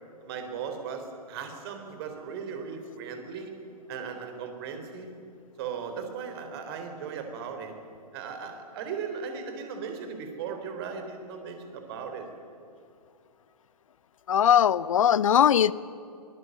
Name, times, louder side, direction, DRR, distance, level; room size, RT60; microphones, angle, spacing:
voice 1, 0.2-3.5 3.9-5.1 5.6-7.8 8.1-12.3, right 6 dB, 40° right, 6 dB, 3.8 m, -37 dB
voice 2, 14.3-15.7, left 9 dB, 55° left, 20 dB, 0.7 m, -20 dB
23.5 x 20.5 x 7.9 m, 2.5 s
figure-of-eight pair, 115°, 20 cm